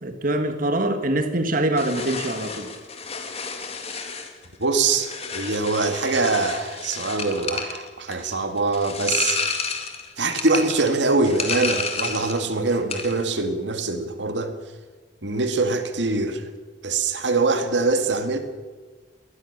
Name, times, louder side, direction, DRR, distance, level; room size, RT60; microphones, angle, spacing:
voice 1, 0.0-2.7, right 1 dB, 50° right, 7 dB, 1.8 m, -24 dB
sound 1, 1.7-12.5 12.7-13.2, left 5 dB, 35° left, 2.5 m, -31 dB
voice 2, 4.6-9.4 10.2-14.5 15.2-16.5 16.8-18.4, right 3 dB, 85° right, 7 dB, 2.1 m, -23 dB
22.0 x 19.0 x 6.7 m, 1.4 s
head